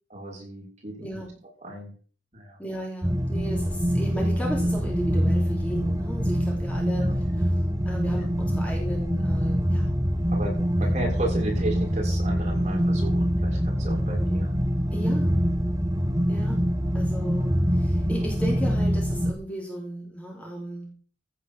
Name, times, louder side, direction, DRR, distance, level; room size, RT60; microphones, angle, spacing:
voice 1, 0.1-1.1 1.6-1.9 2.3-2.6 7.0-7.2 10.3-14.5, right 1 dB, 35° right, -1 dB, 6.4 m, -34 dB
voice 2, 2.6-7.2 7.8-9.9 10.8-11.0 14.9-15.3 16.3-16.7 16.9-21.0, equal, 5° left, -2 dB, 3.2 m, -35 dB
sound 1, 3.0-19.3, equal, 15° right, 1.1 m, -24 dB
15.5 x 6.3 x 7.4 m, 0.41 s
head